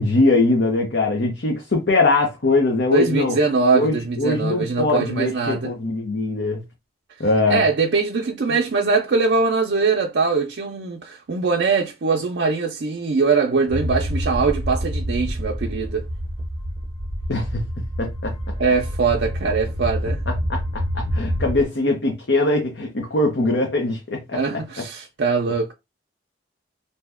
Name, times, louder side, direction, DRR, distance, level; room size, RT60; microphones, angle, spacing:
voice 1, 0.0-3.4 3.7-6.6 7.2-7.6 17.3-17.6 18.0-18.3 20.5-24.4, left 2 dB, 65° left, 0.7 m, -21 dB
voice 2, 2.9-5.7 7.5-16.1 18.6-20.2 24.3-25.7, right 4 dB, 65° right, 0.5 m, -22 dB
sound 1, 13.7-21.6, equal, 20° left, 1.1 m, -27 dB
2.7 x 2.2 x 3.4 m
head